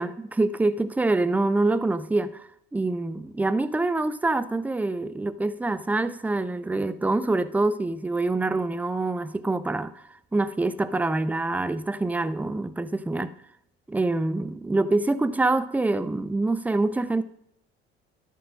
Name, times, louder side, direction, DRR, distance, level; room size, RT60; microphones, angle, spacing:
voice 1, 0.0-10.0 10.3-13.3 13.9-17.2, right 2 dB, 5° right, 0.5 m, -25 dB
10.5 x 5.3 x 6.0 m
figure-of-eight pair, 60°, 33 cm